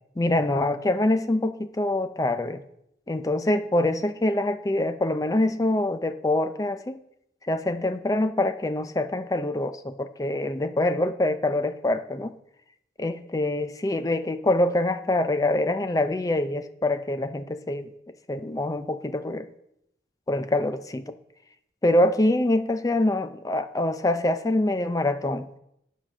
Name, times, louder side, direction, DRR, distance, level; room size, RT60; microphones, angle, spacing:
voice 1, 0.2-2.6 3.1-7.0 7.5-12.3 13.0-17.9 18.3-19.5 20.3-21.1 21.8-25.5, left 1 dB, 20° left, 11 dB, 0.4 m, -25 dB
9.5 x 5.1 x 6.0 m, 0.78 s
head